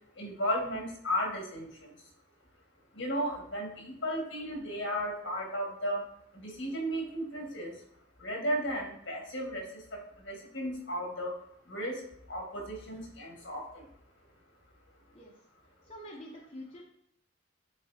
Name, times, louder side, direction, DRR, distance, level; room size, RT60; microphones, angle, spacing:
voice 1, 0.1-1.9 2.9-6.1 6.3-7.7 8.2-11.3 11.7-12.0 12.3-13.8, equal, 65° left, 0 dB, 1.8 m, -35 dB
voice 2, 15.8-16.8, equal, 30° left, -4 dB, 0.8 m, -46 dB
9.3 x 3.9 x 2.8 m, 0.71 s
head